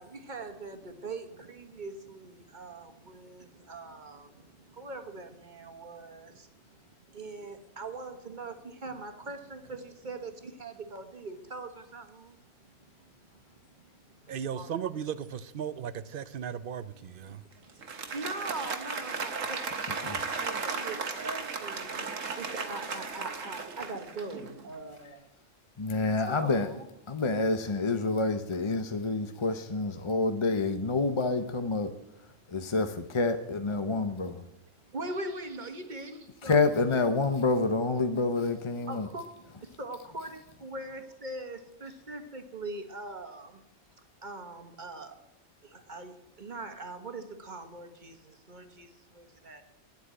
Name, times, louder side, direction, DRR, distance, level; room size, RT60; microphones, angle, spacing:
voice 1, 0.0-6.8 7.1-12.4 13.9-14.7 17.2-22.1 22.4-25.3 26.0-26.9 34.9-36.5 38.9-39.3 39.6-43.6 44.2-45.1 45.6-49.6, right 2 dB, 35° right, 6 dB, 1.6 m, -42 dB
voice 2, 14.3-17.4, right 8 dB, 55° right, 15 dB, 0.6 m, -36 dB
Applause, 17.7-24.7, right 4 dB, 75° right, 1.7 m, -35 dB
voice 3, 25.8-26.7 27.1-31.9 32.5-34.3 36.4-39.1, left 3 dB, 30° left, 8 dB, 0.6 m, -28 dB
10.5 x 8.2 x 8.8 m, 0.89 s
omnidirectional pair, 1.3 m